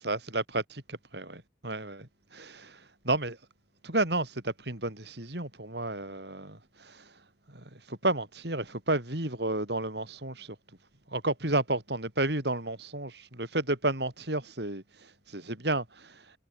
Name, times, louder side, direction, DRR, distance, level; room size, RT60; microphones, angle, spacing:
voice 1, 0.0-3.4 3.8-7.1 7.5-10.6 11.1-16.4, right 2 dB, 65° right, 4.5 m, -32 dB
head